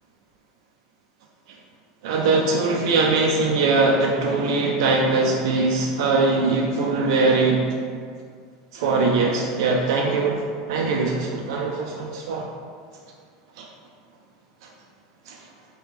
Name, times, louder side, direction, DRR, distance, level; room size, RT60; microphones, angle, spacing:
voice 1, 2.0-7.6 8.7-10.4 10.7-12.5 13.6-13.7 15.3-15.4, right 3 dB, 80° right, -1 dB, 0.3 m, -21 dB
3.2 x 2.2 x 3.3 m, 2.1 s
supercardioid pair, 130°, 3 cm